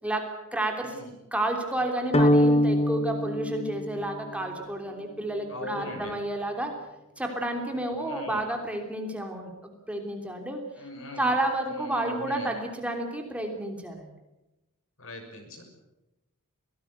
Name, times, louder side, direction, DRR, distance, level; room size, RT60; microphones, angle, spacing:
voice 1, 0.0-1.0 1.3-6.7 7.2-10.6 11.2-14.1, right 1 dB, 5° right, 3 dB, 3.2 m, -31 dB
sound 1, 2.1-4.4, left 1 dB, 25° left, 0.9 m, -23 dB
voice 2, 5.5-6.1 8.0-8.5 10.8-11.3 11.7-12.5 15.0-15.6, left 1 dB, 65° left, 5 dB, 6.4 m, -39 dB
23.5 x 18.5 x 8.2 m, 0.95 s
head